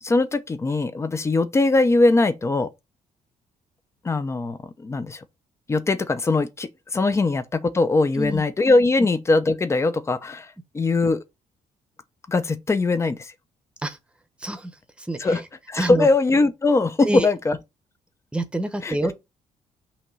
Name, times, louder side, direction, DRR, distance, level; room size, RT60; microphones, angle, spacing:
voice 1, 0.0-2.7 4.0-5.2 5.7-11.2 12.3-13.3 15.2-15.4 15.7-17.6 18.8-19.1, left 3 dB, 20° left, 0.7 m, -21 dB
voice 2, 14.4-14.7 15.0-15.4 15.8-16.1 17.0-17.3 18.3-19.1, right 1 dB, 10° right, 1.0 m, -26 dB
5.8 x 3.0 x 5.4 m
cardioid pair, 145°, 13 cm